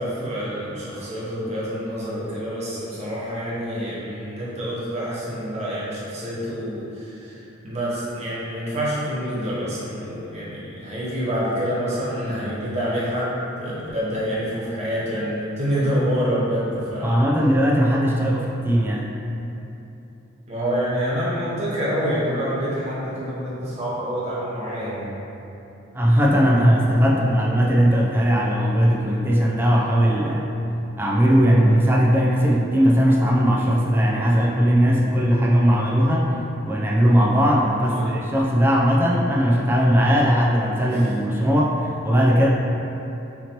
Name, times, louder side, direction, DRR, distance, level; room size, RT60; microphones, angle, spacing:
voice 1, 0.0-17.3 20.5-25.1 37.7-38.1 40.9-41.0, equal, 30° right, -8 dB, 1.0 m, -27 dB
voice 2, 17.0-19.1 25.9-30.4 31.0-36.4 36.6-42.5, equal, 10° right, -4 dB, 0.4 m, -18 dB
5.9 x 2.9 x 2.9 m, 2.9 s
head